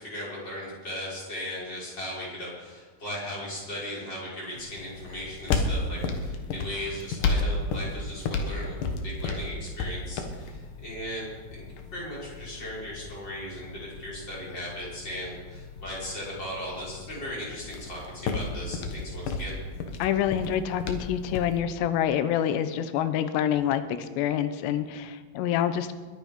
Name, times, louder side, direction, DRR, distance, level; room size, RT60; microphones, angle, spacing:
voice 1, 0.0-11.6 11.9-19.6, left 1 dB, 25° left, -6 dB, 5.6 m, -37 dB
sound 1, 4.6-21.6, left 3 dB, 65° left, 2.4 m, -33 dB
voice 2, 20.0-25.9, left 10 dB, 85° left, 11 dB, 3.0 m, -27 dB
22.0 x 9.0 x 5.3 m, 1.5 s
omnidirectional pair, 4.8 m